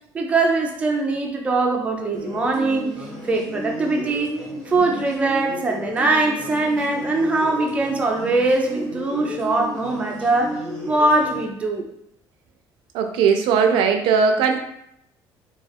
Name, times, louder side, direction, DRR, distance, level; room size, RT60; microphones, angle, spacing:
voice 1, 0.1-4.4 4.7-10.6 10.9-11.9, right 2 dB, 15° right, 1 dB, 0.3 m, -22 dB
sound 1, 2.1-11.4, equal, 5° left, 0.9 m, -33 dB
voice 2, 12.9-14.6, right 6 dB, 90° right, 5 dB, 0.4 m, -18 dB
2.3 x 2.2 x 3.3 m, 0.76 s
cardioid pair, 150°, 8 cm